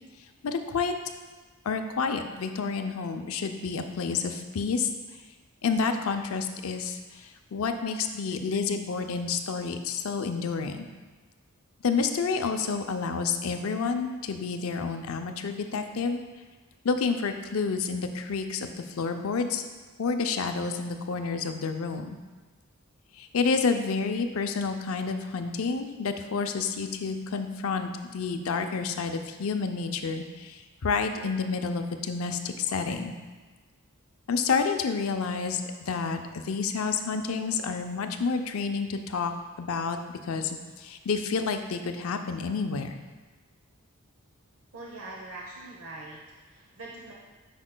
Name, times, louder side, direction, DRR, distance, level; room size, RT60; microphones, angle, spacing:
voice 1, 0.4-0.9 1.6-4.9 5.6-10.8 11.8-16.2 16.8-19.7 20.0-22.1 23.2-33.1 34.3-39.3 39.6-40.0 40.3-43.0, left 5 dB, 80° left, 6 dB, 0.5 m, -29 dB
voice 2, 44.7-47.1, right 2 dB, 80° right, -3 dB, 0.9 m, -43 dB
9.9 x 5.2 x 2.2 m, 1.3 s
head